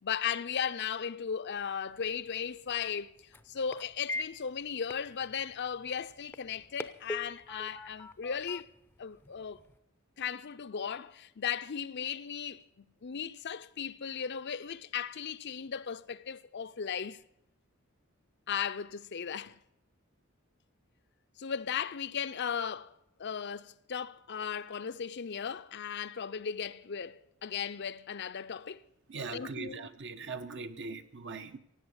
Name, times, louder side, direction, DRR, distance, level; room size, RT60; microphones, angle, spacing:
voice 1, 0.0-3.1 3.5-8.7 9.0-9.6 10.2-17.2 18.5-19.6 21.4-22.9 23.2-28.8 29.3-29.8, left 7 dB, 55° left, 0.6 m, -36 dB
sound 1, 1.9-9.8, left 1 dB, 10° left, 0.6 m, -45 dB
voice 2, 29.1-31.6, right 4 dB, 60° right, 1.1 m, -40 dB
17.0 x 8.5 x 8.0 m
head